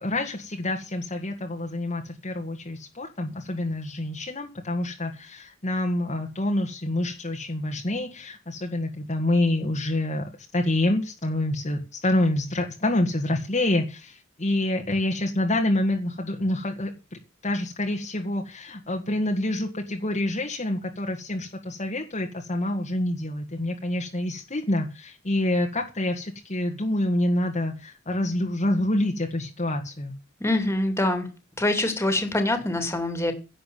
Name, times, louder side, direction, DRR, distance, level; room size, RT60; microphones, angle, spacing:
voice 1, 0.0-10.3 10.5-30.1, left 1 dB, 35° left, 2 dB, 1.9 m, -27 dB
voice 2, 30.4-31.3 31.6-33.3, left 1 dB, 15° left, 7 dB, 2.8 m, -24 dB
11.0 x 7.7 x 9.3 m, 0.32 s
head